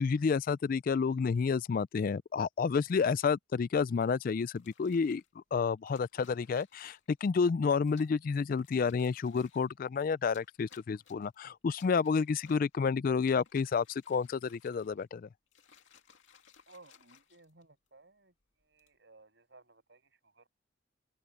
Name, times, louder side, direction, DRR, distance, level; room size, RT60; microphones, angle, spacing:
voice 1, 0.0-15.3, left 5 dB, 45° left, 0.3 m, -30 dB
sound 1, 4.6-5.3 5.9-7.2 7.8-8.2 8.6-9.7 10.2-11.3 11.7-12.8 13.1-15.0 15.5-17.9 18.6-18.9, left 7 dB, 70° left, 2.5 m, -61 dB
voice 2, 16.7-18.3 18.6-20.5, right 3 dB, 60° right, 7.4 m, -59 dB
open air
head